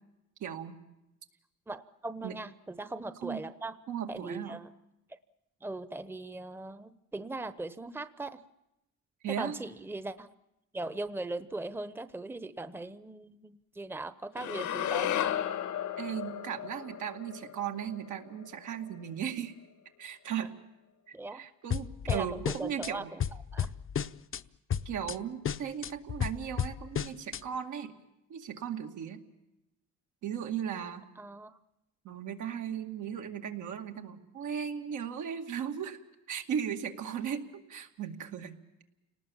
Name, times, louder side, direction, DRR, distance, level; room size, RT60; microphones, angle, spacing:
voice 1, 0.4-0.8 2.2-2.3 3.2-3.4 3.9-4.6 9.2-9.6 16.0-19.5 20.0-20.5 21.1-23.1 24.8-28.0 28.3-29.2 30.2-31.1 32.0-36.0 36.3-38.6, right 8 dB, 80° right, 4 dB, 2.4 m, -37 dB
voice 2, 1.7-3.8 4.1-4.7 5.6-8.4 9.4-10.3 10.7-15.1 21.1-21.4 22.1-23.2 23.5-23.7 31.2-31.6, right 2 dB, 5° right, 13 dB, 0.9 m, -39 dB
sound 1, 14.4-18.6, left 10 dB, 75° left, 1.4 m, -34 dB
sound 2, 21.7-22.9 23.2-24.4 24.7-25.2 25.4-27.4, left 8 dB, 45° left, 0.8 m, -33 dB
29.5 x 19.0 x 7.3 m, 0.92 s
cardioid pair, 90°, 30 cm